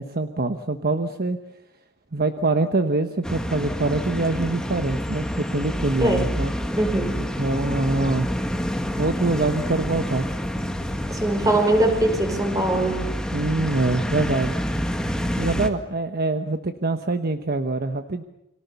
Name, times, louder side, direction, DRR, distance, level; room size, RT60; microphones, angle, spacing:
voice 1, 0.0-1.4 2.1-6.5 7.4-8.3 9.0-10.3 13.3-14.5 15.4-18.2, right 2 dB, 45° right, 8 dB, 1.2 m, -24 dB
sound 1, 3.2-15.7, equal, 5° left, 1.9 m, -28 dB
voice 2, 6.8-7.1 11.1-13.0, right 1 dB, 15° right, 5 dB, 5.2 m, -21 dB
30.0 x 24.0 x 7.0 m, 0.88 s
head